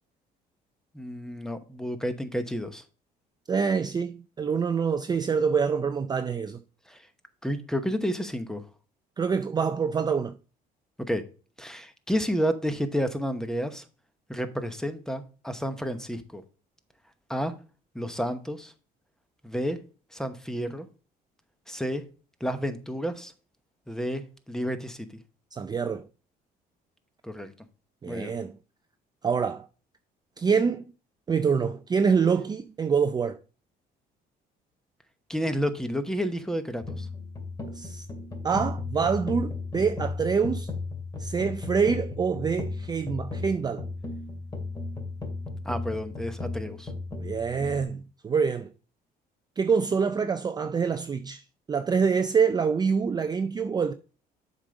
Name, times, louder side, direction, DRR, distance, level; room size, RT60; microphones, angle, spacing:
voice 1, 0.9-2.8 6.9-7.0 7.4-8.6 11.1-11.2 11.6-13.8 14.3-16.4 17.3-17.5 17.9-18.7 19.4-19.8 20.1-20.9 21.7-22.0 22.4-23.3 23.9-25.1 27.2-27.5 28.1-28.3 35.3-37.1 45.6-46.9, equal, 5° left, 0.9 m, -30 dB
voice 2, 3.5-6.6 9.2-10.4 25.5-26.0 28.0-28.5 29.2-29.7 30.4-30.8 31.3-33.4 37.7-38.0 38.4-40.7 41.2-43.8 47.2-48.7 49.6-51.4 51.7-53.9, right 6 dB, 25° right, 0.4 m, -26 dB
sound 1, 36.8-47.8, left 3 dB, 20° left, 2.3 m, -35 dB
7.3 x 5.1 x 4.0 m
cardioid pair, 110°, 17 cm